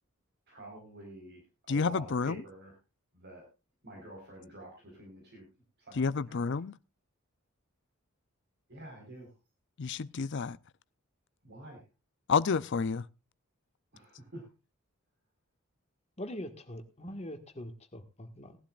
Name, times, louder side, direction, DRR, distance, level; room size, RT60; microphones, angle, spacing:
voice 1, 0.5-2.8 3.1-3.4 3.8-5.4 5.8-6.5 8.7-9.3 11.4-11.8 13.9-14.5, right 1 dB, 50° right, 4.5 m, -48 dB
voice 2, 1.7-2.4 6.0-6.8 9.8-10.6 12.3-13.0, left 5 dB, 55° left, 0.5 m, -29 dB
voice 3, 16.2-18.6, equal, 30° left, 1.7 m, -42 dB
19.5 x 11.5 x 2.4 m
head